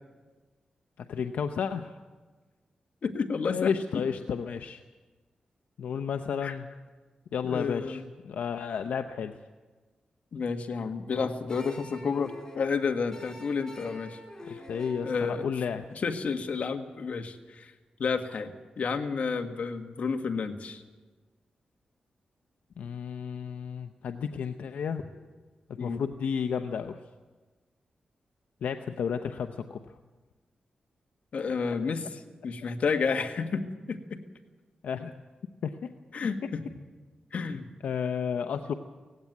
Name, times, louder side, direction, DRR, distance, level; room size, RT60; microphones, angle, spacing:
voice 1, 1.0-1.9 3.5-4.8 5.8-6.7 7.3-9.4 14.5-15.9 22.8-25.0 25.7-27.0 28.6-29.9 34.8-35.1 35.6-35.8 37.8-38.7, left 7 dB, 90° left, 7 dB, 0.8 m, -32 dB
voice 2, 3.0-3.7 6.4-6.5 7.4-8.0 10.3-14.2 15.0-15.4 16.0-17.7 18.0-20.8 25.8-26.0 31.3-33.6 33.9-34.0 36.1-36.6 37.3-37.7, left 5 dB, 65° left, 6 dB, 1.7 m, -30 dB
sound 1, 11.5-16.6, left 1 dB, 25° left, 4.4 m, -47 dB
18.0 x 16.0 x 9.4 m, 1.3 s
cardioid pair, 85°, 3 cm